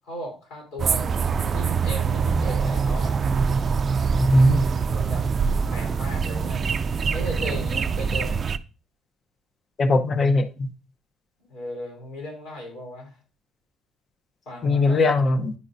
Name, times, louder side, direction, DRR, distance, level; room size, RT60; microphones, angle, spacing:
voice 1, 0.1-1.1 1.5-3.2 4.7-5.3 5.7-6.7 7.1-8.4 11.5-13.1 14.5-15.0, equal, 85° left, 0 dB, 3.7 m, -36 dB
sound 1, 0.8-8.6, right 5 dB, 35° right, 0.3 m, -24 dB
voice 2, 4.1-4.6 9.8-10.7 14.6-15.5, left 2 dB, 40° left, 10 dB, 0.8 m, -20 dB
9.6 x 5.5 x 2.6 m, 0.34 s
cardioid pair, 115°, 0 cm